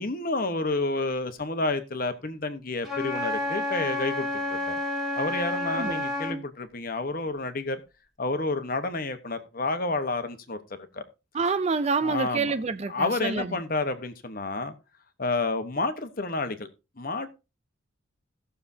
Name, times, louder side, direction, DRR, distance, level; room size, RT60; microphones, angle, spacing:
voice 1, 0.0-4.8 5.2-7.8 8.2-10.6 10.9-11.0 12.0-12.5 12.9-14.7 15.2-16.7 17.0-17.4, left 3 dB, 45° left, 1.1 m, -30 dB
Wind instrument woodwind instrument, 2.8-6.4, left 1 dB, ahead, 1.8 m, -30 dB
voice 2, 5.7-6.0 11.3-13.6, right 4 dB, 30° right, 0.4 m, -27 dB
17.0 x 6.8 x 2.7 m
head